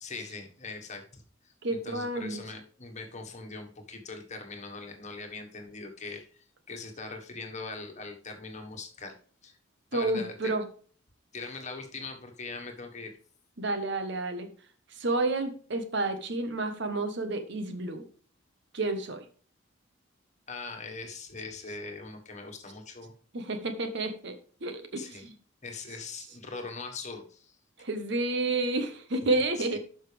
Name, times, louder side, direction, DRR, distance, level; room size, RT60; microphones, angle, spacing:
voice 1, 0.0-1.5 1.8-9.1 9.4-9.6 9.9-10.5 11.3-13.1 20.5-23.1 25.0-25.3 25.6-27.6 29.6-29.8, left 3 dB, 35° left, 4 dB, 1.5 m, -41 dB
voice 2, 1.6-2.4 9.9-10.7 13.6-14.5 15.0-18.1 18.7-19.2 23.3-24.3 24.6-25.3 27.8-29.8, right 2 dB, 60° right, 8 dB, 1.2 m, -30 dB
12.0 x 5.6 x 3.4 m, 0.44 s
head